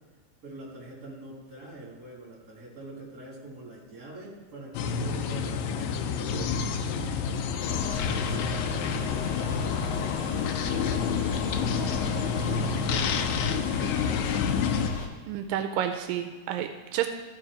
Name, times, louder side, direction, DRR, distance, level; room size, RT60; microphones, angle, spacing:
voice 1, 0.4-7.3 7.8-11.9 12.3-14.7, right 2 dB, 30° right, -4 dB, 2.5 m, -44 dB
sound 1, 4.7-14.9, left 6 dB, 80° left, 1.6 m, -29 dB
sound 2, 7.6-15.1, left 4 dB, 65° left, 1.7 m, -34 dB
voice 2, 15.3-17.1, right 10 dB, 85° right, 7 dB, 2.2 m, -30 dB
13.5 x 5.0 x 4.8 m, 1.5 s
omnidirectional pair, 3.9 m